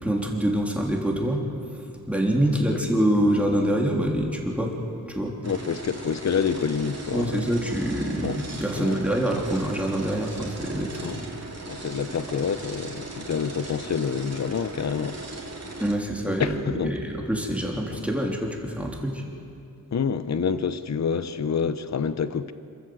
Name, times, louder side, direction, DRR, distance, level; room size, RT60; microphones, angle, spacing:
voice 1, 0.0-1.4 2.1-4.7 5.1-5.3 7.1-11.2 15.8-16.6 16.8-19.2, right 1 dB, 5° right, 3.3 m, -25 dB
voice 2, 2.4-2.8 5.4-7.5 8.2-8.4 8.7-9.0 11.0-11.2 11.7-15.2 16.4-16.9 17.9-18.0 19.9-22.5, left 6 dB, 55° left, 0.8 m, -27 dB
sound 1, 5.4-16.0, right 2 dB, 50° right, 3.2 m, -38 dB
27.5 x 14.0 x 7.8 m
wide cardioid pair, 105°, 33 cm